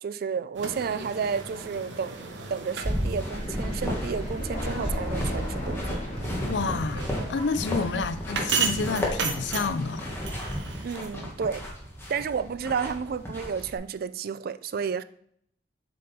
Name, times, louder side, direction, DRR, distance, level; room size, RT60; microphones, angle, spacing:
voice 1, 0.0-6.0 7.9-8.1 10.8-11.7 12.1-15.0, right 6 dB, 55° right, 0.3 m, -31 dB
sound 1, 0.5-11.1, right 5 dB, 75° right, 0.9 m, -36 dB
sound 2, 2.8-13.8, equal, 15° left, 1.5 m, -34 dB
Thunder, 3.3-8.1, equal, 45° left, 1.9 m, -35 dB
voice 2, 6.4-10.1, left 4 dB, 70° left, 0.5 m, -29 dB
7.5 x 3.8 x 4.2 m
head